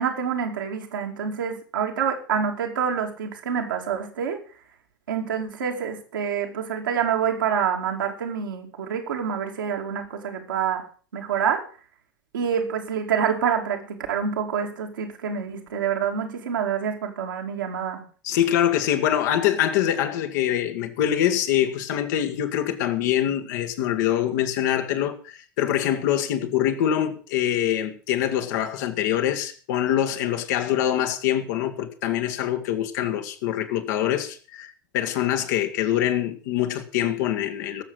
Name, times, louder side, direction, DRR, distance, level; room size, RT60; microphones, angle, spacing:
voice 1, 0.0-4.4 5.1-10.8 11.1-11.6 12.3-18.0, right 7 dB, 70° right, 2.7 m, -27 dB
voice 2, 18.2-37.8, left 11 dB, 60° left, 1.9 m, -24 dB
18.0 x 7.6 x 6.2 m
figure-of-eight pair, 75°, 11 cm